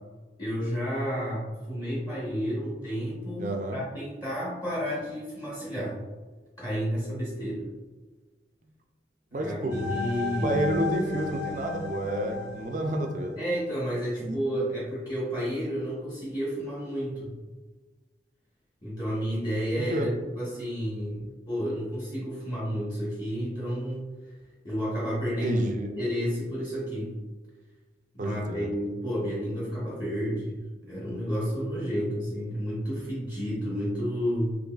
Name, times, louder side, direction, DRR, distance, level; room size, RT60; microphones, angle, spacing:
voice 1, 0.4-6.0 6.6-7.7 9.4-10.6 13.4-17.4 18.8-24.0 24.6-25.6 26.0-27.1 28.1-34.6, equal, 20° left, -7 dB, 0.8 m, -31 dB
voice 2, 3.4-3.8 9.3-9.8 10.4-13.4 14.2-14.4 19.8-20.1 25.4-25.9 28.2-28.7 32.0-32.1, right 1 dB, 45° right, 4 dB, 0.4 m, -30 dB
sound 1, 9.7-13.7, left 4 dB, 80° left, 0.7 m, -34 dB
3.8 x 3.0 x 2.3 m, 1.3 s
head